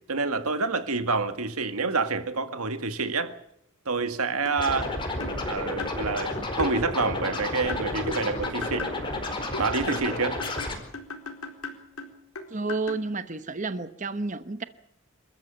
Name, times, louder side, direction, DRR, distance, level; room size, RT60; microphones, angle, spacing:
voice 1, 0.1-3.3 3.9-4.9 5.5-8.9 9.6-10.4, right 4 dB, 90° right, 1.9 m, -28 dB
sound 1, 4.5-4.7 5.2-5.4 5.8-6.0 6.6-6.7 7.7-9.0 9.5-13.1, left 3 dB, 90° left, 4.3 m, -37 dB
Scratching (performance technique), 4.6-10.8, left 2 dB, 20° left, 4.6 m, -31 dB
voice 2, 12.5-14.6, right 3 dB, 35° right, 1.0 m, -31 dB
28.0 x 14.0 x 9.1 m
head